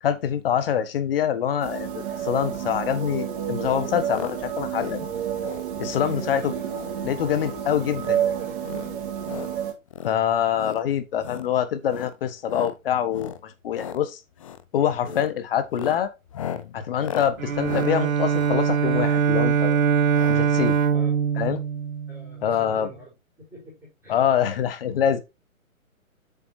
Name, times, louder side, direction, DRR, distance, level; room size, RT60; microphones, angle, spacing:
voice 1, 0.0-5.1 5.8-6.5 7.0-8.3 10.0-14.2 14.7-16.1 16.7-19.8 20.3-20.8 21.4-21.6 22.4-22.9 24.1-25.2, left 9 dB, 40° left, 1.4 m, -25 dB
sound 1, 1.6-9.7, right 9 dB, 35° right, 2.8 m, -30 dB
sound 2, 4.1-4.4 4.6-5.0 5.4-5.7 6.0-6.3 6.7-6.9 7.3-7.6 7.9-8.2 8.6-9.5 9.9-10.2 10.5-10.8 11.2-11.5 11.9-12.2 12.5-12.8 13.1-13.4 13.7-14.0 14.4-14.6 15.0-15.3 15.7-19.3 20.1-20.4 20.7-20.8 20.9-21.0, left 8 dB, 25° left, 0.6 m, -36 dB
voice 2, 5.9-9.6 15.0-15.3 20.9-21.1 22.1-24.2, right 1 dB, 5° right, 4.1 m, -45 dB
Bowed string instrument, 17.4-22.6, right 7 dB, 70° right, 1.1 m, -22 dB
7.7 x 7.6 x 2.8 m
figure-of-eight pair, 130°, 42 cm